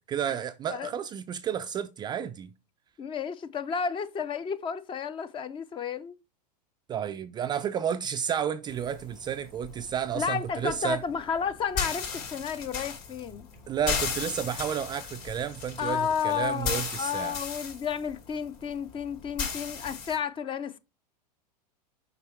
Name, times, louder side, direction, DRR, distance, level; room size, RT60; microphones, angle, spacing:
voice 1, 0.1-2.5 6.9-11.0 13.7-17.4, right 9 dB, 20° right, 0.3 m, -31 dB
voice 2, 3.0-6.2 10.1-13.5 15.8-20.8, left 7 dB, 25° left, 0.6 m, -32 dB
sound 1, 8.7-20.2, left 6 dB, 45° left, 3.0 m, -36 dB
6.0 x 5.2 x 4.4 m
hypercardioid pair, 95°, 21 cm